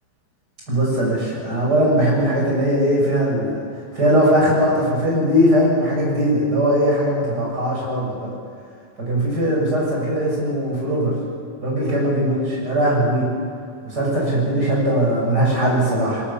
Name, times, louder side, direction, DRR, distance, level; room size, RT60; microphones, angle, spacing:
voice 1, 0.7-3.6 3.9-8.3 9.0-11.1 11.6-13.3 13.8-16.2, equal, 30° right, -3 dB, 7.2 m, -19 dB
22.0 x 20.0 x 7.2 m, 2.2 s
omnidirectional pair, 3.5 m